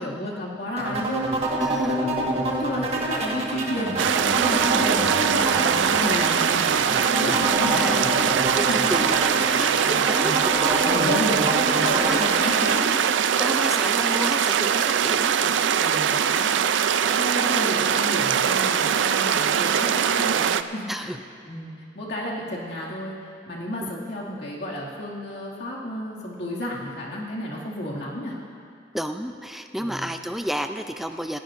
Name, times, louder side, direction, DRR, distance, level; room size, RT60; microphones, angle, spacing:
voice 1, 0.0-8.0 8.7-8.9 10.8-13.0 13.5-13.7 15.8-21.2 21.5-28.4 29.8-30.1, left 1 dB, 65° left, -4 dB, 2.3 m, -32 dB
sound 1, 0.8-12.8, right 2 dB, 35° right, 1.5 m, -27 dB
voice 2, 1.6-2.2 4.7-4.9 7.3-8.0 8.6-11.2 11.9-12.2 12.7-13.0 13.4-15.8 20.9-21.2 23.8-23.9 28.9-31.4, equal, ahead, 6 dB, 0.4 m, -31 dB
sound 2, 4.0-20.6, right 8 dB, 80° right, 0.4 m, -22 dB
19.0 x 15.0 x 2.6 m, 2.5 s
head